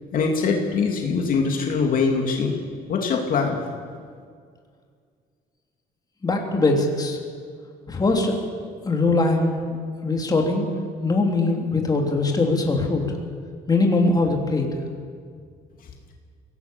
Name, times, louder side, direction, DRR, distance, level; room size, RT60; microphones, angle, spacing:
voice 1, 0.1-2.6 2.9-3.6, left 5 dB, 55° left, 1 dB, 2.7 m, -22 dB
voice 2, 6.2-7.2 7.9-8.5 8.8-9.5 10.0-10.7 11.0-13.0 13.7-14.7, left 3 dB, 25° left, 1 dB, 3.1 m, -21 dB
23.0 x 17.5 x 7.0 m, 2.1 s
cardioid pair, 110°, 17 cm